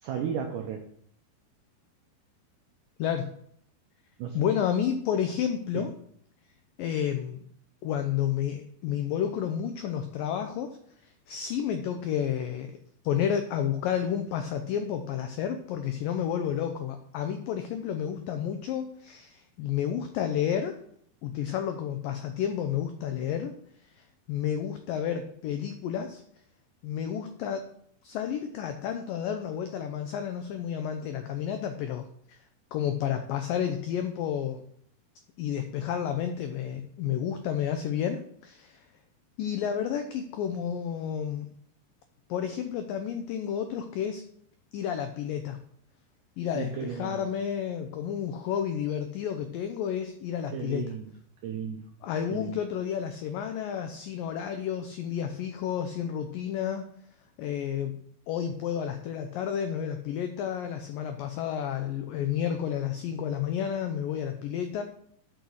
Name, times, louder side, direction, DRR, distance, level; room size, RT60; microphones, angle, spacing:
voice 1, 0.0-0.9 4.2-4.5 5.7-5.9 46.6-47.3 50.5-51.1 51.4-51.8 52.3-52.6, right 8 dB, 80° right, 3 dB, 1.8 m, -34 dB
voice 2, 4.3-5.9 6.8-7.4 7.8-10.8 11.3-12.7 13.0-20.8 21.2-23.5 24.0-26.2 26.8-27.7 28.0-32.4 32.7-34.6 35.4-38.8 39.4-41.5 42.3-44.2 44.7-45.6 46.4-50.9 52.0-56.9 57.4-58.0 58.3-64.8, left 9 dB, 90° left, 7 dB, 1.9 m, -31 dB
7.0 x 6.4 x 6.4 m, 0.66 s
omnidirectional pair, 4.8 m